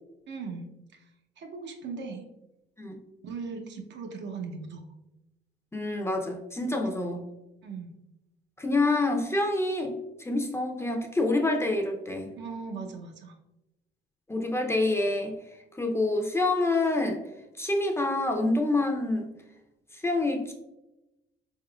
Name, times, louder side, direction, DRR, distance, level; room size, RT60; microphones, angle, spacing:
voice 1, 0.3-1.0 1.4-2.2 3.2-4.9 7.6-7.9 12.4-13.3, right 4 dB, 65° right, 3 dB, 0.7 m, -38 dB
voice 2, 5.7-7.2 8.6-12.3 14.3-15.4 15.8-17.2 17.6-19.3 19.9-20.5, left 2 dB, 15° left, 2 dB, 0.5 m, -27 dB
4.1 x 3.6 x 2.3 m, 0.95 s
cardioid pair, 90°, 20 cm